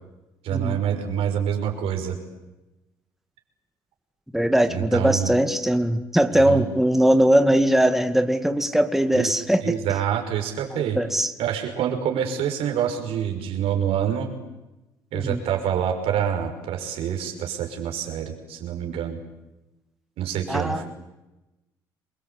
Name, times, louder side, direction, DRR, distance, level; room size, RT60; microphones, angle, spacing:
voice 1, 0.4-2.2 4.7-5.3 6.3-6.6 9.1-9.3 9.6-11.0 11.4-14.3 15.1-19.2 20.2-20.9, right 9 dB, 70° right, 3 dB, 5.9 m, -26 dB
voice 2, 4.3-9.7 10.7-11.3 15.1-15.4 20.5-20.8, right 1 dB, 5° right, 8 dB, 2.2 m, -20 dB
28.0 x 23.0 x 8.5 m, 1.0 s
hypercardioid pair, 55°, 10 cm